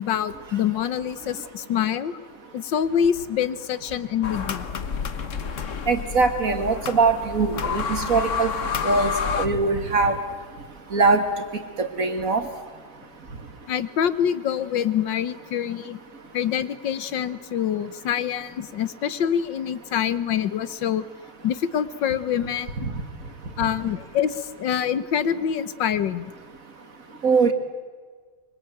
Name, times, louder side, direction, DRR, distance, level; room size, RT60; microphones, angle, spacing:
voice 1, 0.0-2.2 2.5-4.6 9.3-9.4 13.7-16.0 16.3-21.1 21.4-22.7 23.6-26.3, left 9 dB, 75° left, 14 dB, 1.8 m, -25 dB
sound 1, 4.2-9.5, left 6 dB, 45° left, 1.4 m, -29 dB
voice 2, 5.9-8.5 8.8-10.2 10.9-11.3 11.8-12.4 27.2-27.5, right 4 dB, 45° right, 8 dB, 2.3 m, -21 dB
25.0 x 24.0 x 9.2 m, 1.5 s
omnidirectional pair, 2.1 m